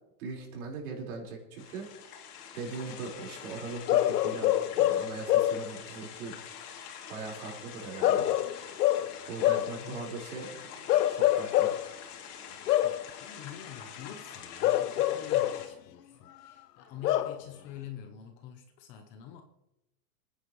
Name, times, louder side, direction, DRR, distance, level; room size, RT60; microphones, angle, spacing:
voice 1, 0.2-1.9 2.5-6.4 7.1-8.3 9.3-11.7, right 4 dB, 65° right, 0 dB, 4.6 m, -40 dB
sound 1, 1.6-15.7, left 7 dB, 70° left, 2.9 m, -46 dB
Bark / Livestock farm animals working animals, 3.9-5.7 8.0-9.8 10.9-11.9 12.7-13.1 14.6-15.7 17.0-17.4, left 13 dB, 85° left, 0.8 m, -26 dB
voice 2, 12.8-19.4, left 9 dB, 25° left, 6 dB, 0.7 m, -47 dB
26.0 x 9.9 x 3.1 m, 0.91 s
supercardioid pair, 165°, 47 cm